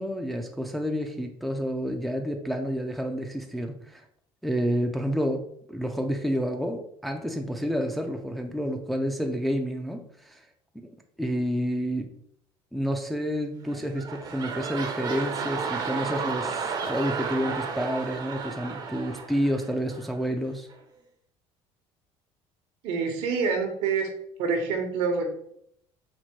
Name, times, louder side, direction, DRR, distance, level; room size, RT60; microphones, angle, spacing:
voice 1, 0.0-4.0 4.4-5.4 5.7-10.4 10.8-10.9 11.2-12.1 12.7-20.7, equal, ahead, 3 dB, 0.4 m, -29 dB
sound 1, 13.6-20.2 20.7-20.8, right 5 dB, 40° right, 0.7 m, -33 dB
voice 2, 22.8-24.1 24.4-25.3, right 5 dB, 75° right, 3 dB, 1.1 m, -26 dB
4.4 x 2.1 x 4.4 m, 0.68 s
cardioid pair, 140°, 11 cm